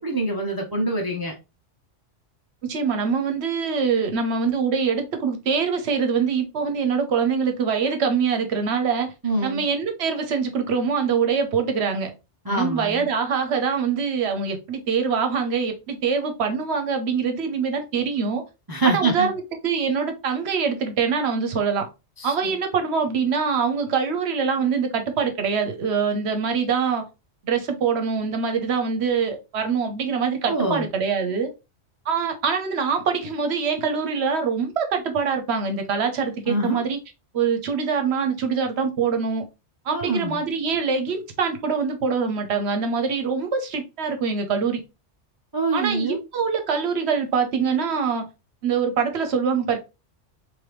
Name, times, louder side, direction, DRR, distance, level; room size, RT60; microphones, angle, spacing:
voice 1, 0.0-1.3 9.2-9.6 12.5-13.1 18.7-19.3 22.2-22.5 30.5-30.8 36.5-36.8 39.9-40.4 45.5-46.2, right 2 dB, 35° right, 0.3 m, -25 dB
voice 2, 2.7-9.1 9.4-12.1 12.5-18.4 18.8-21.9 22.2-27.0 27.4-31.5 32.1-37.0 37.3-39.4 39.9-44.8 45.7-48.2 48.6-49.8, right 6 dB, 70° right, 0.9 m, -24 dB
3.3 x 2.7 x 3.0 m
omnidirectional pair, 1.2 m